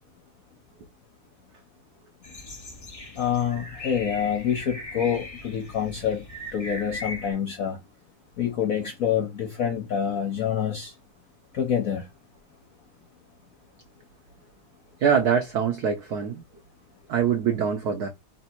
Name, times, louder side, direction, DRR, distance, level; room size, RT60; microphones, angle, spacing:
sound 1, 2.2-7.3, left 1 dB, 25° left, 0.8 m, -39 dB
voice 1, 3.2-6.2 6.5-7.8 8.4-10.9 11.5-12.1, left 8 dB, 65° left, 0.8 m, -27 dB
voice 2, 15.0-16.4 17.1-18.1, right 7 dB, 80° right, 0.8 m, -24 dB
3.3 x 2.9 x 4.3 m
omnidirectional pair, 2.4 m